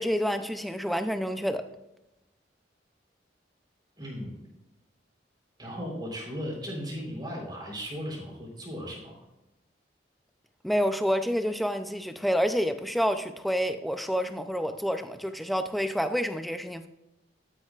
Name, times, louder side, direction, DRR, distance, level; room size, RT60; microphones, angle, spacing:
voice 1, 0.0-1.6 10.6-16.9, equal, ahead, 8 dB, 0.5 m, -28 dB
voice 2, 4.0-4.4 5.6-9.2, equal, 25° right, -3 dB, 4.1 m, -36 dB
12.5 x 9.9 x 2.5 m, 0.95 s
head